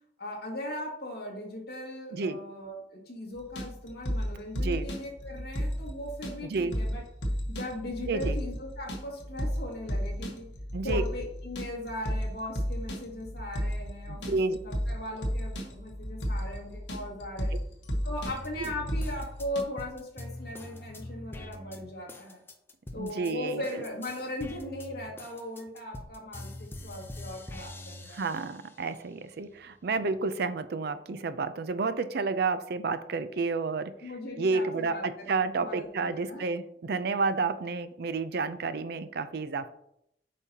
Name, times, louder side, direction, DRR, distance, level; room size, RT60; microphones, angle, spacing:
voice 1, 0.2-7.0 7.5-10.5 10.8-14.4 14.6-17.5 18.0-22.4 22.9-28.3 34.0-36.4, left 1 dB, 60° left, -1 dB, 2.0 m, -38 dB
sound 1, 3.4-19.6, equal, 85° left, 1.2 m, -33 dB
voice 2, 4.5-4.9 6.5-6.8 8.1-8.4 10.7-11.0 14.1-14.6 17.5-17.6 18.6-18.7 23.0-23.6 28.1-33.9 34.4-39.7, right 4 dB, 60° right, 12 dB, 0.5 m, -30 dB
sound 2, 18.3-23.3 23.6-28.8 29.3-30.3, left 1 dB, 15° left, 0.6 m, -44 dB
8.2 x 5.4 x 2.8 m, 0.76 s
head